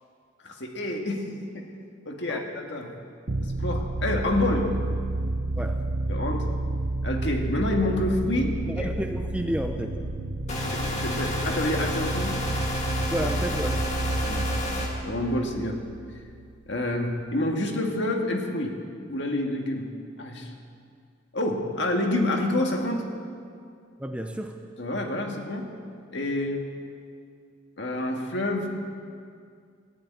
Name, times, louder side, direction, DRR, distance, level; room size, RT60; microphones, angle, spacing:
voice 1, 0.4-1.3 1.5-1.7 2.1-2.9 3.4-4.7 6.1-6.5 7.0-8.9 10.6-12.4 13.2-13.3 14.2-14.5 15.0-15.8 16.7-18.7 19.1-19.9 20.2-20.5 21.3-23.0 24.8-25.7 26.1-26.7 27.8-28.7, left 1 dB, 60° left, 2 dB, 1.9 m, -28 dB
sound 1, 3.3-16.7, right 2 dB, 60° right, 0.8 m, -30 dB
voice 2, 8.6-10.0 13.1-13.8 24.0-24.6, equal, 5° right, 5 dB, 0.6 m, -31 dB
sound 2, 10.5-14.9, left 1 dB, 35° left, 2.4 m, -31 dB
15.0 x 11.0 x 8.9 m, 2.2 s
head